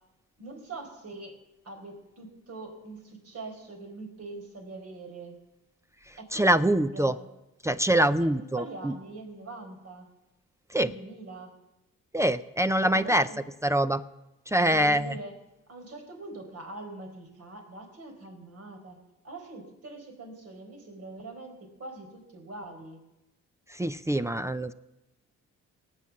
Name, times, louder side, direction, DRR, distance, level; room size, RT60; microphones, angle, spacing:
voice 1, 0.4-1.4 1.6-5.4 6.2-7.3 8.2-10.1 10.7-11.6 12.8-13.4 14.6-15.3 15.7-19.0 19.2-23.0, right 2 dB, 55° right, 3 dB, 4.3 m, -43 dB
voice 2, 6.3-7.1 7.6-8.9 10.7-10.9 12.1-13.3 13.6-14.0 14.5-15.1 23.7-24.7, right 1 dB, 10° right, 13 dB, 0.5 m, -24 dB
18.0 x 8.5 x 7.4 m, 0.96 s
cardioid pair, 90°, 30 cm